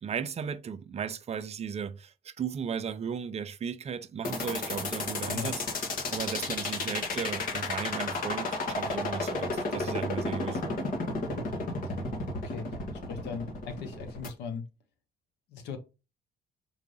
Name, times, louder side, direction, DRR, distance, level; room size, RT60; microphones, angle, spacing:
voice 1, 0.0-5.8 6.1-10.9, right 7 dB, 40° right, 0.7 m, -36 dB
sound 1, 4.2-14.3, left 2 dB, 55° left, 1.9 m, -32 dB
voice 2, 5.2-5.5 11.8-12.0 12.4-12.8 13.1-14.7 15.5-15.8, left 5 dB, 85° left, 1.6 m, -38 dB
4.7 x 3.9 x 5.5 m
cardioid pair, 110°, 17 cm